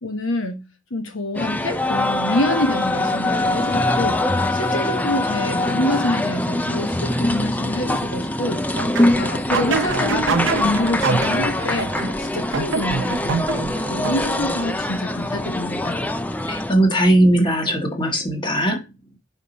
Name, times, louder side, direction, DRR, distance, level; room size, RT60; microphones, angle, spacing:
voice 1, 0.0-0.7 0.9-16.0, left 1 dB, 75° left, 1.1 m, -27 dB
sound 1, 1.3-16.7, left 1 dB, 10° left, 0.4 m, -23 dB
sound 2, 8.8-14.7, right 5 dB, 65° right, 0.7 m, -26 dB
voice 2, 16.5-18.8, right 1 dB, 25° left, 1.6 m, -18 dB
5.2 x 5.1 x 4.0 m
head